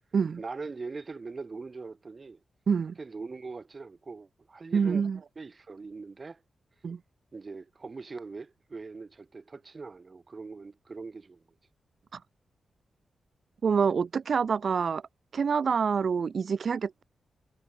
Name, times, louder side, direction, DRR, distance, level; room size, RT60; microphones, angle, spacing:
voice 1, 0.4-2.4 3.0-5.1 5.4-6.4 7.3-11.4, right 4 dB, 35° right, 4.2 m, -41 dB
voice 2, 4.7-5.2 6.8-7.0 13.6-15.0 15.3-17.0, right 6 dB, 50° right, 0.4 m, -26 dB
wide cardioid pair, 135°, 0 cm